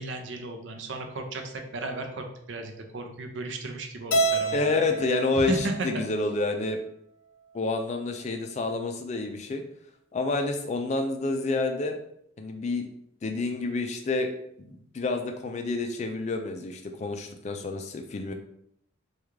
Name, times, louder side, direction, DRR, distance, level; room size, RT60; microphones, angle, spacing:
voice 1, 0.0-4.8 5.3-5.9, right 2 dB, 65° right, 4 dB, 0.5 m, -34 dB
Keyboard (musical), 4.1-6.5, right 3 dB, 85° left, 0.6 m, -29 dB
voice 2, 4.5-6.8 7.5-9.6 10.1-12.0 12.4-12.9 13.2-14.3 14.6-18.3, left 3 dB, 35° left, 5 dB, 0.3 m, -29 dB
3.4 x 2.3 x 3.1 m, 0.71 s
head